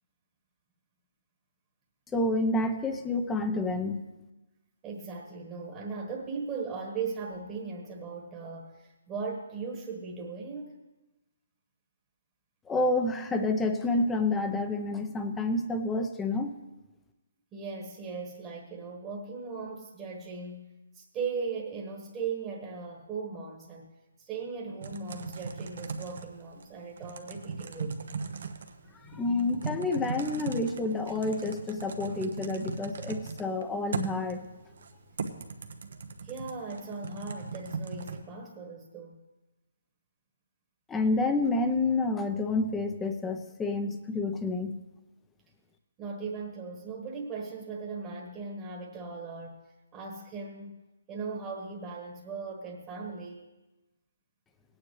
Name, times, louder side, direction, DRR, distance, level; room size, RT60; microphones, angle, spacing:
voice 1, 2.1-4.0 12.7-16.5 28.9-34.5 40.9-44.8, left 2 dB, 10° left, 7 dB, 0.8 m, -29 dB
voice 2, 4.8-10.8 17.5-23.9 24.2-28.0 29.1-29.2 36.2-39.2 46.0-49.6 49.9-50.8 51.1-53.5, right 4 dB, 20° right, 0 dB, 1.4 m, -38 dB
Typing, 24.8-38.2, right 4 dB, 70° right, 1.0 m, -39 dB
18.0 x 9.4 x 3.2 m, 1.1 s
hypercardioid pair, 155°, 0 cm